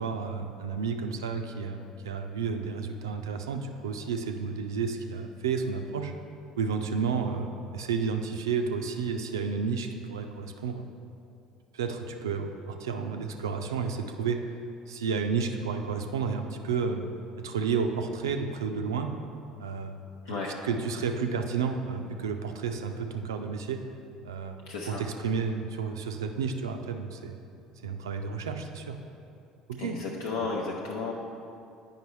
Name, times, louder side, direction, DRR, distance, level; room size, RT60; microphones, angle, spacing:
voice 1, 0.0-6.1 6.6-10.9 11.7-14.4 14.9-17.0 17.4-19.1 19.6-20.1 20.5-23.8 24.2-27.4 27.8-29.0 29.8-30.0, right 5 dB, 75° right, 5 dB, 0.4 m, -31 dB
voice 2, 24.7-25.0 29.8-31.1, left 4 dB, 65° left, -3 dB, 0.6 m, -33 dB
8.8 x 5.2 x 3.1 m, 2.5 s
figure-of-eight pair, 60°, 2 cm